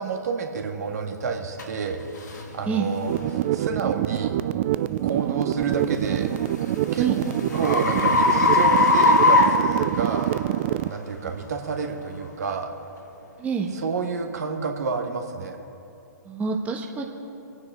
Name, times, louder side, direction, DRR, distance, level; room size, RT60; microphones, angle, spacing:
voice 1, 0.0-2.0 2.3-4.4 5.0-6.3 6.9-7.1 7.5-10.3 10.8-12.7 13.7-15.6, right 5 dB, 65° right, 3 dB, 1.7 m, -29 dB
sound 1, 1.6-1.7 2.3-2.5 3.1-3.3 5.9-10.4, left 3 dB, 70° left, 1.9 m, -21 dB
sound 2, 3.1-10.9, right 14 dB, 40° right, 0.4 m, -26 dB
voice 2, 13.4-13.7 16.3-17.0, right 6 dB, 15° right, 0 dB, 1.2 m, -26 dB
26.0 x 9.5 x 3.7 m, 2.8 s
figure-of-eight pair, 120°, 10 cm